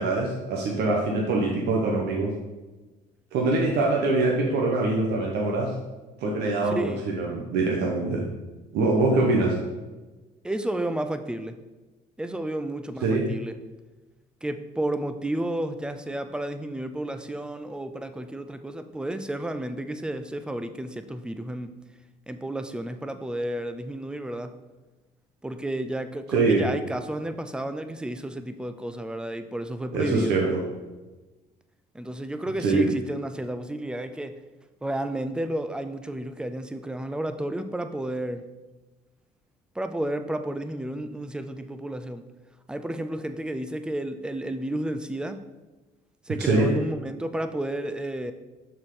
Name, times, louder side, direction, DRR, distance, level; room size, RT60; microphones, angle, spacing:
voice 1, 0.0-2.3 3.3-5.7 6.2-8.2 8.7-9.5 13.0-13.3 26.3-26.7 29.9-30.6 32.6-32.8 46.4-46.7, right 3 dB, 75° right, -2 dB, 1.0 m, -23 dB
voice 2, 6.7-7.0 10.4-11.6 12.2-13.5 14.4-21.7 22.3-24.6 25.4-30.4 31.9-34.4 34.8-38.4 39.8-42.2 42.7-45.4 46.3-48.3, right 1 dB, 5° right, 9 dB, 0.4 m, -31 dB
6.4 x 4.5 x 3.8 m, 1.2 s
cardioid pair, 110°, 17 cm